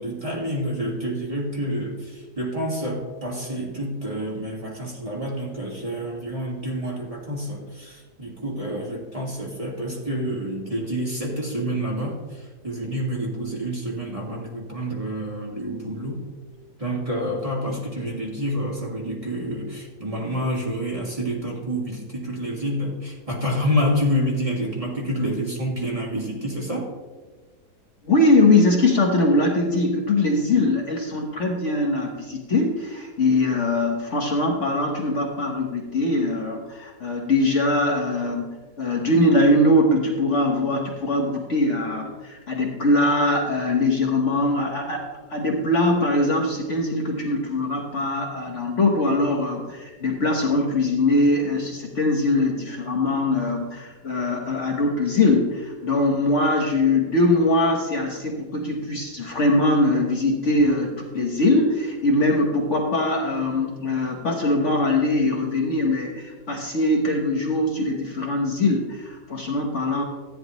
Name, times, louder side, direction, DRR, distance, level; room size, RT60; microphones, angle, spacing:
voice 1, 0.0-16.2 16.8-26.9, equal, 20° right, -3 dB, 2.0 m, -28 dB
voice 2, 28.0-70.0, left 2 dB, 50° left, 0 dB, 1.4 m, -22 dB
14.0 x 9.4 x 3.1 m, 1.3 s
omnidirectional pair, 1.8 m